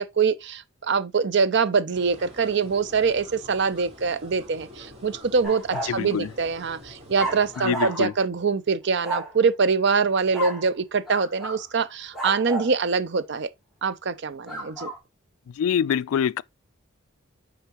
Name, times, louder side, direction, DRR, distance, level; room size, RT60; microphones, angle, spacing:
voice 1, 0.0-13.5 13.8-14.9, right 5 dB, 55° right, 0.6 m, -24 dB
sound 1, 1.9-7.6, left 1 dB, 30° right, 4.0 m, -46 dB
sound 2, 5.4-6.0 7.1-8.2 9.0-9.4 10.3-10.7 11.1-11.6 12.1-12.7 14.5-15.0, right 1 dB, ahead, 3.1 m, -32 dB
voice 2, 5.9-6.3 7.6-8.1 15.5-16.4, left 8 dB, 80° left, 0.3 m, -25 dB
8.1 x 4.9 x 2.9 m
head